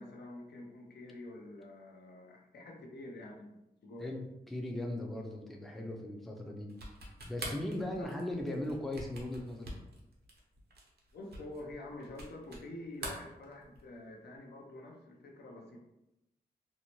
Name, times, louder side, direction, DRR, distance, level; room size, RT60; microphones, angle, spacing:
voice 1, 0.0-4.1 8.0-8.1 11.1-15.8, left 1 dB, 85° left, -1 dB, 0.6 m, -47 dB
voice 2, 4.0-6.7 7.3-9.7, left 1 dB, ahead, 0 dB, 0.4 m, -38 dB
sound 1, 6.7-12.7 12.9-14.0, right 2 dB, 80° right, 0.7 m, -45 dB
2.7 x 2.1 x 2.9 m, 0.93 s
wide cardioid pair, 105°, 17 cm